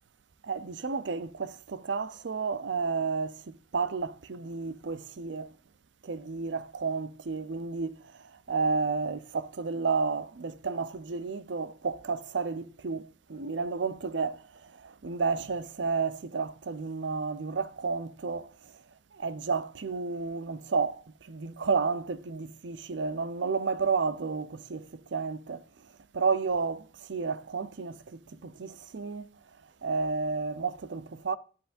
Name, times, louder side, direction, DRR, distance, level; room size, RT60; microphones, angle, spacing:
voice 1, 0.4-5.5 6.0-8.0 8.5-18.5 19.1-25.6 26.1-29.3 29.8-31.4, right 4 dB, 90° right, 0.6 m, -31 dB
12.5 x 8.0 x 2.5 m
head